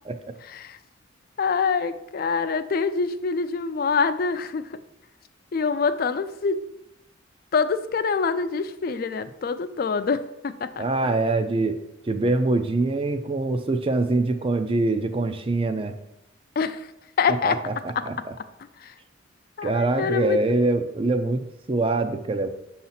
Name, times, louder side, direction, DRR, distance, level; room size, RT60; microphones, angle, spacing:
voice 1, 0.5-0.8 1.4-4.6 5.5-6.6 7.5-10.8 16.6-16.9 17.2-17.6 17.9-18.0 18.8-18.9 19.6-20.6, left 5 dB, 50° left, 11 dB, 0.3 m, -25 dB
voice 2, 10.8-11.8 12.1-15.9 17.3-18.3 19.6-22.5, right 2 dB, 30° right, 7 dB, 0.4 m, -24 dB
6.5 x 2.8 x 5.6 m, 0.85 s
head